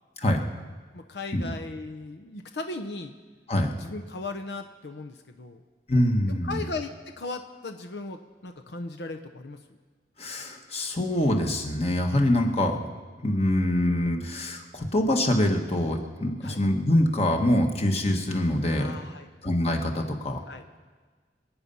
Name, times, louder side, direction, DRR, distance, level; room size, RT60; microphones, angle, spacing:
voice 1, 0.9-3.1 3.8-5.6 6.3-9.6 16.4-16.6 18.7-19.3 20.5-20.6, left 3 dB, 70° left, 6 dB, 0.8 m, -37 dB
voice 2, 5.9-6.6 10.2-12.8 13.2-19.0 19.4-20.4, left 1 dB, 35° left, 3 dB, 1.4 m, -24 dB
25.5 x 8.8 x 5.5 m, 1.4 s
head